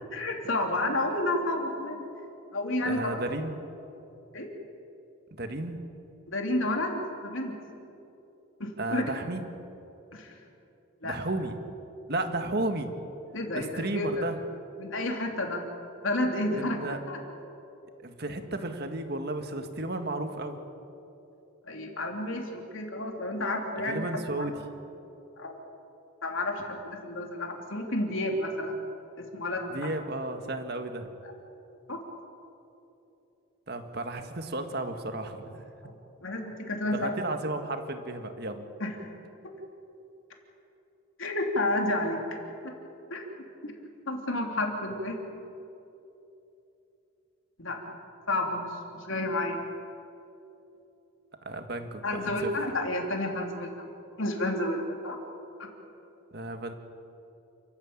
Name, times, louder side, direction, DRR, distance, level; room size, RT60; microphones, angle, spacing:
voice 1, 0.1-2.0 2.5-3.2 4.3-4.5 6.3-7.5 8.6-9.1 10.1-10.3 11.0-11.1 13.3-14.2 14.8-15.6 16.0-16.8 17.1-17.2 21.6-24.0 24.4-24.5 25.4-25.6 26.2-28.9 29.2-29.9 31.9-32.0 35.8-35.9 36.2-37.1 38.8-38.9 41.2-42.2 42.6-42.7 43.1-43.2 43.6-43.7 44.1-45.2 47.6-47.9 48.3-49.6 52.0-53.7 54.2-55.2, left 1 dB, 70° left, 2 dB, 3.4 m, -30 dB
voice 2, 2.8-3.7 5.3-5.8 8.8-9.4 11.0-11.6 12.1-12.9 13.5-14.4 16.5-17.0 18.0-20.6 23.8-24.6 29.7-31.1 33.7-35.6 36.9-38.7 51.4-52.5 56.3-56.7, right 2 dB, 50° right, 6 dB, 1.8 m, -33 dB
29.0 x 14.0 x 8.9 m, 2.9 s
head